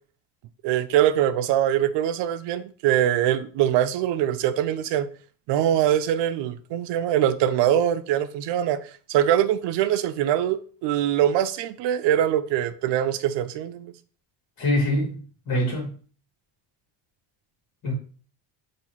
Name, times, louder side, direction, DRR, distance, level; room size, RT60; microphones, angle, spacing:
voice 1, 0.6-5.1 5.5-8.8 9.1-13.9, right 11 dB, 65° right, 0.5 m, -23 dB
voice 2, 14.6-16.0 17.8-17.9, left 1 dB, 50° left, 2.0 m, -25 dB
5.5 x 2.8 x 3.0 m
cardioid pair, 115°, 46 cm